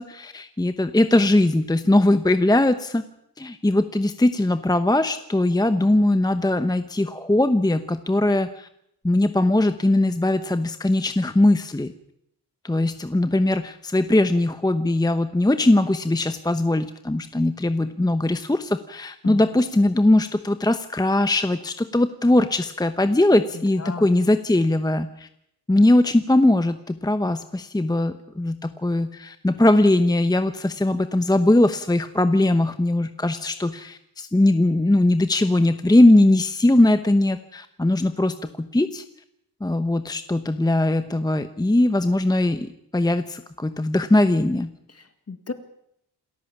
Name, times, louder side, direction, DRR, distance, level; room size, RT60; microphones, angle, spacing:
voice 1, 0.0-3.0 3.4-8.7 9.0-11.9 12.6-25.3 25.7-39.0 39.6-44.7, left 1 dB, 10° left, 10 dB, 0.9 m, -20 dB
voice 2, 23.5-24.1 44.9-45.5, left 4 dB, 40° left, 9 dB, 2.2 m, -34 dB
28.0 x 14.0 x 7.3 m, 0.76 s
wide cardioid pair, 135°, 39 cm